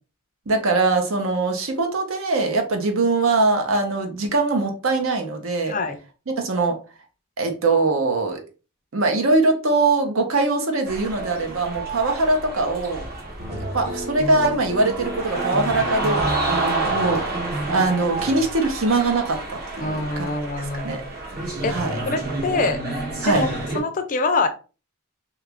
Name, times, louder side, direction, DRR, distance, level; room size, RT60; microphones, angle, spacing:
voice 1, 0.5-5.8 6.4-6.8 7.4-8.4 8.9-13.0 13.7-17.4 17.7-20.3 20.6-21.0 21.7-22.0 23.2-23.5, right 3 dB, 70° right, 4 dB, 0.7 m, -22 dB
voice 2, 5.7-6.0 19.8-21.1 21.6-22.8 23.2-24.5, left 3 dB, 35° left, 8 dB, 0.4 m, -25 dB
sound 1, 10.9-23.8, right 2 dB, 45° right, 1.0 m, -29 dB
sound 2, 13.4-18.5, right 1 dB, 30° right, 0.5 m, -31 dB
2.9 x 2.4 x 3.3 m, 0.33 s
head